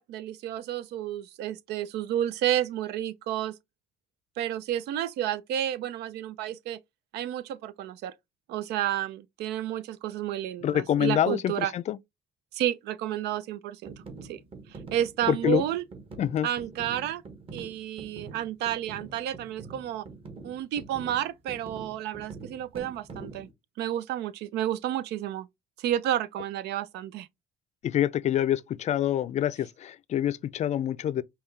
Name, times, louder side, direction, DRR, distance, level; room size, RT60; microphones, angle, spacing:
voice 1, 0.0-3.5 4.4-6.8 7.1-8.1 8.5-11.7 12.5-13.9 14.3-14.4 14.9-15.8 16.4-17.2 17.5-20.0 20.4-23.5 23.8-25.5 25.8-27.3, right 12 dB, 80° right, 0.5 m, -31 dB
voice 2, 10.6-12.0 15.3-15.6 16.2-16.5 27.8-31.2, left 11 dB, 45° left, 0.4 m, -26 dB
sound 1, 13.9-23.5, right 3 dB, 35° right, 1.3 m, -45 dB
5.4 x 2.3 x 3.1 m
cardioid pair, 110°, 17 cm